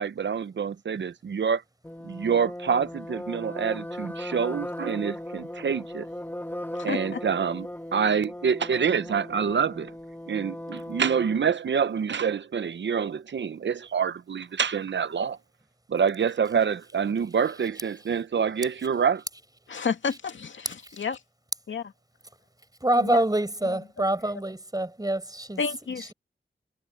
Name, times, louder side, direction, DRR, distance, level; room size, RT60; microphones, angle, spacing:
voice 1, 0.0-1.6 2.0-6.1 6.8-7.7 7.9-9.9 10.3-15.4 15.9-19.2, right 6 dB, 75° right, 0.7 m, -26 dB
sound 1, 1.8-11.5, left 1 dB, 10° left, 1.7 m, -37 dB
voice 2, 6.7-7.2 19.7-21.2 21.7-21.9 23.0-23.2 23.7-23.8 25.6-26.1, left 5 dB, 85° left, 2.4 m, -31 dB
voice 3, 22.8-25.6, right 1 dB, 20° right, 5.1 m, -25 dB
cardioid pair, 45°, 19 cm